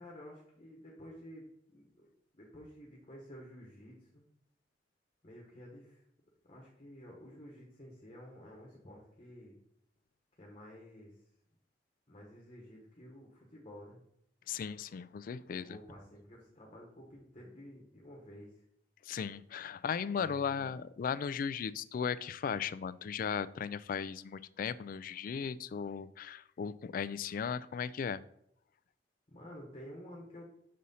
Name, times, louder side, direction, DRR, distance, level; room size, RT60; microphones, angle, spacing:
voice 1, 0.0-2.1 2.3-4.3 5.2-6.0 6.4-9.6 10.4-11.2 12.1-14.0 15.4-18.6 20.1-20.8 29.3-30.7, equal, 35° left, -2 dB, 1.4 m, -52 dB
voice 2, 14.5-15.7 19.1-28.2, left 6 dB, 50° left, 17 dB, 0.3 m, -37 dB
6.3 x 4.1 x 5.5 m, 0.73 s
head